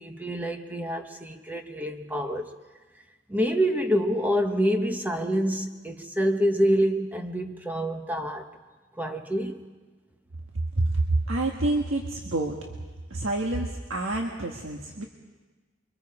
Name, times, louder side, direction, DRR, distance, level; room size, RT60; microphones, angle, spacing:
voice 1, 0.0-2.5 3.3-8.5 9.0-9.6, equal, 10° right, 5 dB, 1.2 m, -26 dB
voice 2, 10.8-12.6 13.1-15.0, right 2 dB, 75° right, 1 dB, 1.6 m, -27 dB
29.0 x 23.5 x 4.9 m, 1.3 s
head